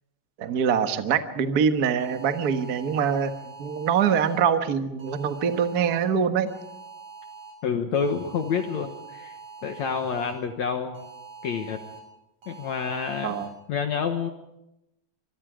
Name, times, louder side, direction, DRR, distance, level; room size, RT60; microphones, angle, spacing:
voice 1, 0.4-6.5 13.2-13.5, right 7 dB, 75° right, 7 dB, 0.8 m, -24 dB
sound 1, 2.0-4.4 5.0-6.0 6.5-7.5 7.9-10.3 10.9-12.0 12.4-13.5, right 5 dB, 50° right, 9.3 m, -44 dB
voice 2, 7.6-9.4 9.6-11.1 11.4-11.8 12.5-13.3 13.7-14.3, left 6 dB, 60° left, 6 dB, 2.3 m, -28 dB
25.5 x 23.5 x 5.0 m, 0.86 s
omnidirectional pair, 4.0 m